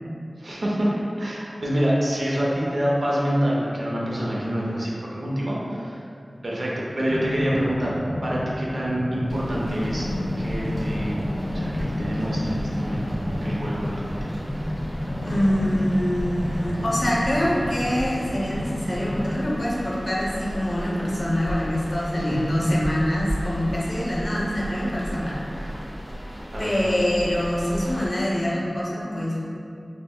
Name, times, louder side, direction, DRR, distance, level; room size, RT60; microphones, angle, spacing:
voice 1, 0.4-6.0 6.4-10.1 10.4-11.2 11.5-14.2 22.2-22.3 26.5-27.0, equal, 75° right, -5 dB, 0.5 m, -26 dB
sound 1, 7.1-19.6, left 1 dB, 5° right, 1.3 m, -30 dB
sound 2, 9.3-28.2, equal, 25° right, 1.0 m, -35 dB
voice 2, 15.2-25.5 26.6-29.4, equal, 50° left, -5 dB, 0.6 m, -25 dB
3.4 x 2.0 x 2.3 m, 2.5 s
wide cardioid pair, 40°, 0 cm